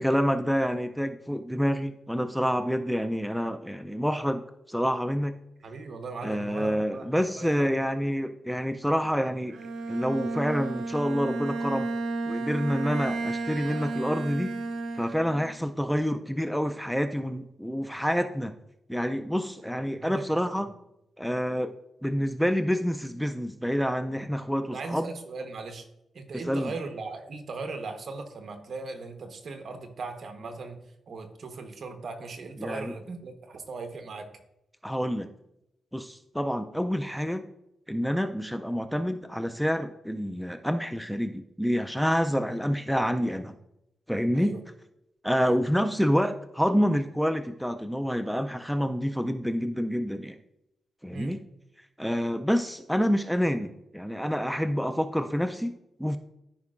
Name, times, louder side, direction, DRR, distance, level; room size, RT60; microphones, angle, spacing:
voice 1, 0.0-5.3 6.2-9.6 9.9-11.9 12.3-14.6 15.0-18.5 18.9-20.7 21.2-21.7 22.0-25.1 26.3-26.7 32.6-32.9 34.8-35.3 35.9-37.5 37.9-43.5 44.1-44.6 45.2-50.4 51.0-51.4 52.0-56.2, equal, ahead, 8 dB, 0.3 m, -28 dB
voice 2, 5.6-7.7 15.6-15.7 19.9-20.6 24.7-25.9 26.1-30.8 31.1-34.3 42.3-42.4 44.3-44.6 45.4-45.6 51.1-51.4, right 3 dB, 55° right, 5 dB, 1.1 m, -38 dB
Bowed string instrument, 9.5-15.6, right 3 dB, 90° right, 0.7 m, -33 dB
13.0 x 5.3 x 2.5 m, 0.85 s
wide cardioid pair, 130°, 0 cm